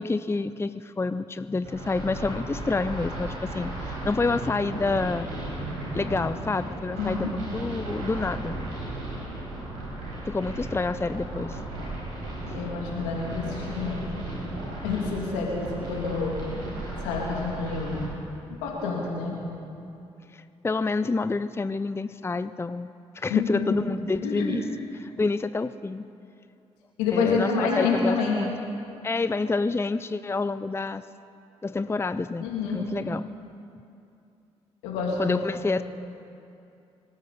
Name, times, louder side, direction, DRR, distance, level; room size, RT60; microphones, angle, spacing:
voice 1, 0.0-5.3 5.9-8.6 10.2-11.6 20.3-22.9 23.1-24.6 25.2-26.0 27.1-28.5 29.0-31.0 31.6-32.5 32.7-33.3 35.2-35.8, left 3 dB, 20° left, 12 dB, 0.5 m, -28 dB
sound 1, 1.6-18.0, right 1 dB, 85° right, 4.5 m, -35 dB
voice 2, 7.0-7.3 12.5-14.3 14.8-16.4 17.0-18.0 18.6-19.3 23.3-23.8 24.2-24.6 27.0-28.3 32.4-32.8 34.8-35.4, left 4 dB, 85° left, -2 dB, 2.9 m, -28 dB
25.5 x 13.5 x 4.2 m, 2.6 s
hypercardioid pair, 45°, 14 cm